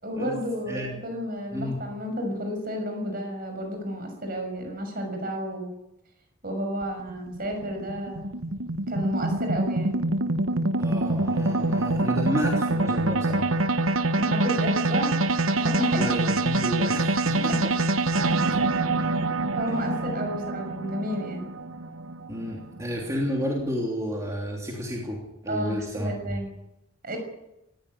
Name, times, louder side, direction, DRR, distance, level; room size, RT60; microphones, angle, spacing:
voice 1, 0.0-5.7 6.4-8.3 8.9-10.0 14.1-16.2 17.4-17.6 18.5-18.6 19.5-21.5 25.5-26.5 27.0-27.2, equal, 45° right, 4 dB, 6.3 m, -31 dB
sound 1, 6.8-23.2, right 2 dB, 85° right, 1.1 m, -25 dB
voice 2, 10.8-13.5 15.9-17.8 19.7-19.8 22.3-26.4, equal, 15° right, -2 dB, 3.1 m, -31 dB
19.0 x 15.0 x 9.9 m, 0.89 s
head